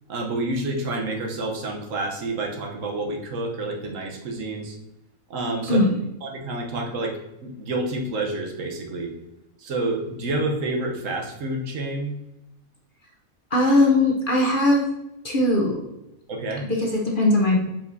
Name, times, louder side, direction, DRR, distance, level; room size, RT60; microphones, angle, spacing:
voice 1, 0.1-4.8 5.3-5.8 6.2-9.1 9.6-12.1 16.3-16.7, right 2 dB, 65° right, 2 dB, 1.2 m, -28 dB
voice 2, 5.7-6.0 13.5-14.8 15.2-15.8 16.7-17.6, left 1 dB, 45° left, -1 dB, 0.9 m, -19 dB
7.2 x 5.0 x 2.7 m, 0.90 s
omnidirectional pair, 1.5 m